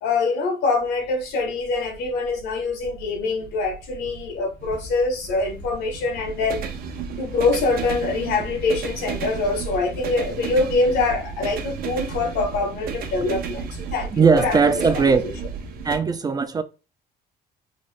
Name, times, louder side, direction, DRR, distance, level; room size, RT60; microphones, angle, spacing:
voice 1, 0.0-6.6 7.2-14.7 15.1-15.3, left 3 dB, 80° left, 1.0 m, -24 dB
sound 1, 0.8-16.0, right 6 dB, 60° right, 0.6 m, -33 dB
voice 2, 14.1-15.2 15.8-16.6, right 5 dB, 25° right, 0.3 m, -18 dB
3.7 x 2.1 x 3.2 m
cardioid pair, 110°, 17 cm